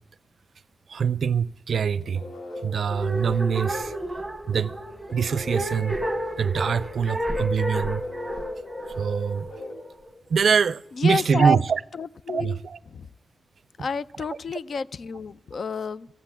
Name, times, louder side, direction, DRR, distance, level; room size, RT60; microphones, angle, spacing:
voice 1, 0.9-2.2 2.6-3.9 4.5-4.7 5.1-6.0 6.4-8.0 9.0-9.5 10.3-11.8 12.3-12.8, right 6 dB, 60° right, 0.4 m, -24 dB
sound 1, 1.8-10.5, equal, 70° left, 3.9 m, -38 dB
sound 2, 2.9-10.1, equal, 10° right, 1.4 m, -32 dB
voice 2, 10.9-11.6 12.0-12.6 12.9-13.1 13.8-16.1, left 5 dB, 55° left, 0.5 m, -31 dB
15.5 x 8.4 x 8.8 m
wide cardioid pair, 155°, 0 cm